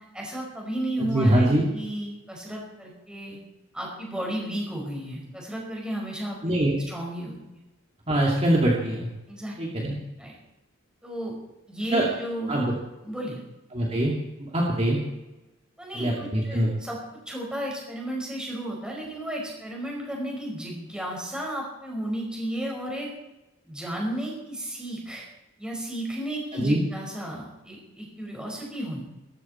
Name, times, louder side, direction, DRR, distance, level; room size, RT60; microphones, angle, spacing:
voice 1, 0.1-3.4 3.7-6.5 6.9-7.6 9.3-9.6 10.2-10.3 11.0-11.4 11.7-12.6 13.0-13.4 15.8-17.0 17.3-23.1 23.6-25.3 25.6-29.0, right 1 dB, 5° right, -2 dB, 5.3 m, -33 dB
voice 2, 1.0-1.6 6.4-6.7 8.1-9.1 9.6-9.9 11.9-12.0 12.5-12.7 13.7-14.1 14.4-15.0 15.9-16.7 26.6-26.8, right 1 dB, 30° right, -3 dB, 2.5 m, -23 dB
18.0 x 15.0 x 4.5 m, 1.0 s
head